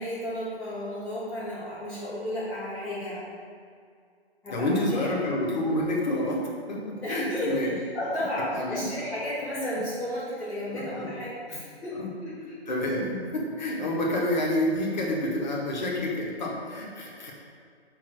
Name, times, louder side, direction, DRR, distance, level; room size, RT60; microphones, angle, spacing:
voice 1, 0.0-3.3 4.4-5.1 7.0-12.6, left 1 dB, 5° left, -19 dB, 1.8 m, -33 dB
voice 2, 4.5-7.7 8.5-8.8 9.5-9.8 10.7-11.1 11.9-12.1 12.7-17.3, left 1 dB, 45° left, -2 dB, 1.6 m, -29 dB
6.3 x 4.5 x 6.2 m, 2.2 s
figure-of-eight pair, 140°, 32 cm